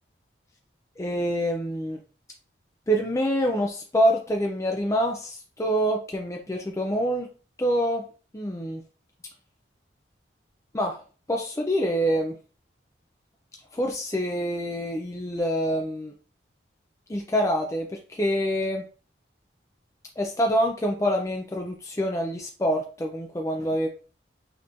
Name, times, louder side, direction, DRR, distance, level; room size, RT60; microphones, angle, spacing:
voice 1, 1.0-2.0 2.9-7.3 7.6-8.0 8.3-8.8 10.7-11.0 11.3-12.3 13.7-16.1 17.1-18.8 20.2-23.9, equal, 15° left, 1 dB, 0.4 m, -26 dB
5.3 x 3.0 x 2.6 m, 0.37 s
head